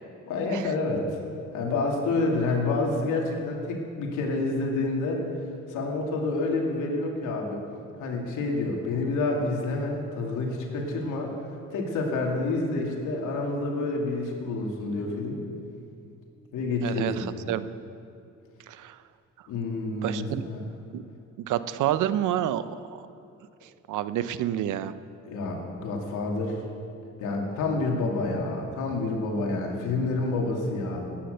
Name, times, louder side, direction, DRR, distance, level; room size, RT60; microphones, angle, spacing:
voice 1, 0.3-1.2 1.5-5.2 5.7-7.6 8.0-11.3 11.7-15.4 16.5-17.3 19.5-20.6 25.2-26.6 27.2-31.1, left 3 dB, 85° left, 0 dB, 2.7 m, -28 dB
voice 2, 16.8-17.6 18.7-19.0 20.0-20.4 20.9-21.0 21.5-22.8 23.9-24.9, right 11 dB, 80° right, 13 dB, 0.7 m, -28 dB
16.0 x 10.0 x 6.7 m, 2.5 s
cardioid pair, 90°, 30 cm